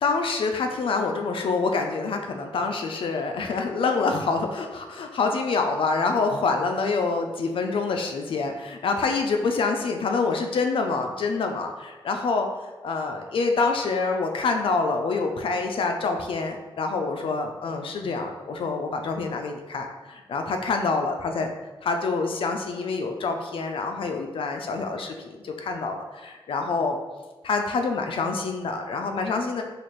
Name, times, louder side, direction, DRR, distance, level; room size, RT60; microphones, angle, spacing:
voice 1, 0.0-12.5 12.8-21.5 21.8-27.0 27.4-29.6, left 4 dB, 65° left, 4 dB, 0.4 m, -26 dB
4.2 x 2.4 x 3.1 m, 1.2 s
cardioid pair, 90°, 10 cm